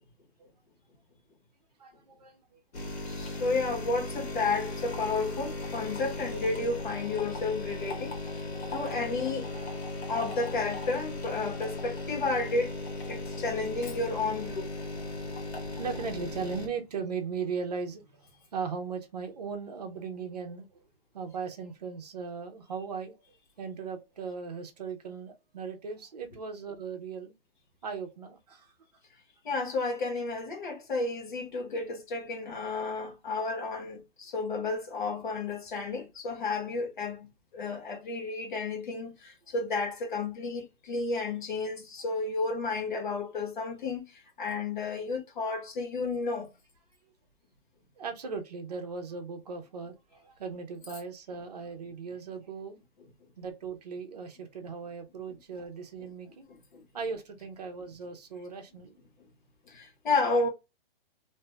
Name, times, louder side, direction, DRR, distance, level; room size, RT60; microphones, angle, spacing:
voice 1, 1.8-2.9 8.6-8.8 9.5-9.8 15.8-20.8 21.1-23.2 23.6-27.3 27.8-28.7 48.0-52.8 53.4-56.5 56.9-59.0, right 5 dB, 40° right, 0.6 m, -38 dB
sound 1, 2.7-16.7, left 2 dB, 80° left, 1.4 m, -37 dB
voice 2, 3.0-9.5 10.1-12.8 13.1-14.7 29.4-37.3 37.5-46.5 56.7-56.8 59.7-60.5, left 3 dB, 50° left, 1.2 m, -32 dB
2.6 x 2.3 x 3.1 m
hypercardioid pair, 180°, 31 cm